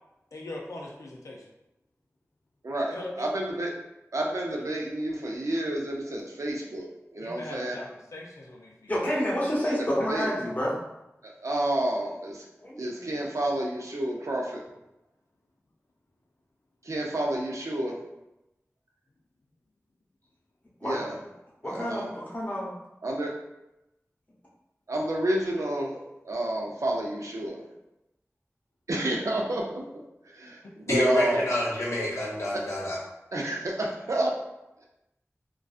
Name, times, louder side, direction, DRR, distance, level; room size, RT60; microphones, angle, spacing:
voice 1, 0.3-1.4 2.9-3.3 4.6-4.7 7.2-8.9 30.6-30.7, left 1 dB, 85° left, -2 dB, 0.4 m, -40 dB
voice 2, 2.6-3.7 4.1-7.8 9.8-10.3 11.2-12.5 12.8-14.6 16.8-18.0 20.8-21.1 21.6-22.1 23.0-23.3 24.9-26.0 26.2-27.6 28.9-29.8 30.3-31.4 33.3-34.3, right 1 dB, 75° right, -1 dB, 0.5 m, -30 dB
voice 3, 8.9-10.8 12.6-12.9 20.8-21.1 21.6-22.7, equal, 30° left, -6 dB, 0.8 m, -29 dB
voice 4, 30.9-33.0, left 1 dB, 65° left, -5 dB, 0.8 m, -27 dB
2.6 x 2.2 x 2.3 m, 0.91 s
wide cardioid pair, 60°, 5 cm